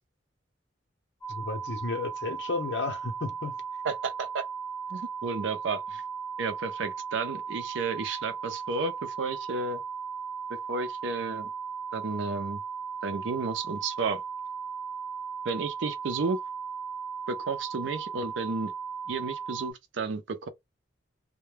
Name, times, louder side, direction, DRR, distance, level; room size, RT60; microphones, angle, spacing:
sound 1, 1.2-19.7, right 6 dB, 15° left, 0.6 m, -37 dB
voice 1, 1.3-3.6, left 3 dB, 65° left, 0.8 m, -33 dB
voice 2, 3.8-4.4 4.9-6.0 6.4-9.8 10.7-11.5 11.9-12.6 13.0-14.2 15.4-16.4 17.3-18.7 19.1-20.5, right 4 dB, 85° right, 0.5 m, -32 dB
2.2 x 2.2 x 3.2 m
head